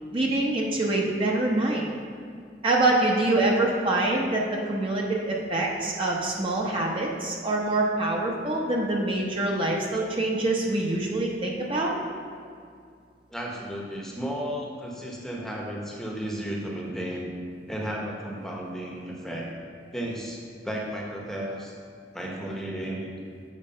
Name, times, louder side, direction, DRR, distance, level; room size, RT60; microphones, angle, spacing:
voice 1, 0.1-1.8 2.6-4.4 4.7-11.9, right 2 dB, 30° right, -2 dB, 0.8 m, -25 dB
voice 2, 13.3-17.3 17.7-19.5 19.9-21.8 22.1-23.1, right 1 dB, 5° left, -2 dB, 0.9 m, -33 dB
7.4 x 4.7 x 5.4 m, 2.2 s
head